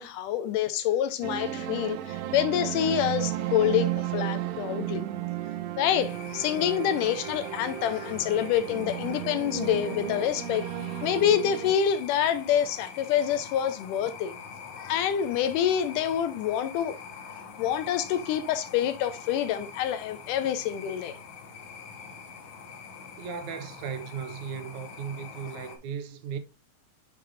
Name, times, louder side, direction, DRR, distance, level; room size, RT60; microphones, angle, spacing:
voice 1, 0.0-5.1 5.8-10.6 11.0-14.3 14.8-17.0 17.3-21.2, left 10 dB, 80° left, 2.2 m, -27 dB
sound 1, 1.2-11.7, right 12 dB, 90° right, 1.5 m, -34 dB
sound 2, 6.0-25.8, left 6 dB, 65° left, 2.5 m, -44 dB
voice 2, 23.2-26.4, right 7 dB, 70° right, 2.1 m, -36 dB
8.5 x 5.1 x 2.5 m
omnidirectional pair, 3.7 m